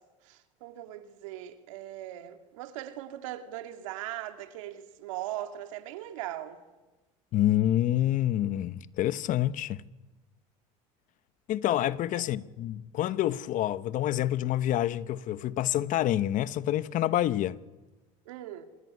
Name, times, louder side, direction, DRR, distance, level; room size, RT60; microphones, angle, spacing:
voice 1, 0.2-6.6 18.3-18.6, right 13 dB, 80° right, 2.3 m, -39 dB
voice 2, 7.3-9.8 11.5-17.6, left 13 dB, 55° left, 1.1 m, -27 dB
27.0 x 18.0 x 9.6 m
supercardioid pair, 90°, 16 cm